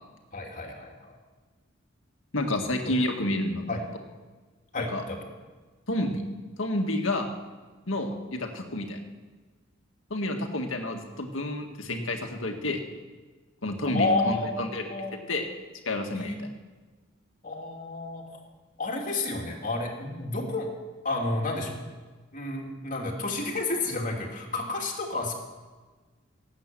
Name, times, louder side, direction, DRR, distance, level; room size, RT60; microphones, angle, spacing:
voice 1, 0.3-1.1 3.7-3.8 4.7-5.3 13.8-14.5 14.9-15.3 16.1-16.4 17.4-18.2 18.8-20.7 21.0-21.8 22.3-25.3, left 2 dB, 40° left, 0 dB, 2.7 m, -30 dB
voice 2, 2.3-3.8 4.8-5.0 5.9-6.2 6.6-7.3 7.9-9.0 10.1-12.8 13.6-15.5 15.9-16.5, left 1 dB, 75° left, 3 dB, 1.9 m, -30 dB
17.5 x 8.5 x 7.6 m, 1.3 s
head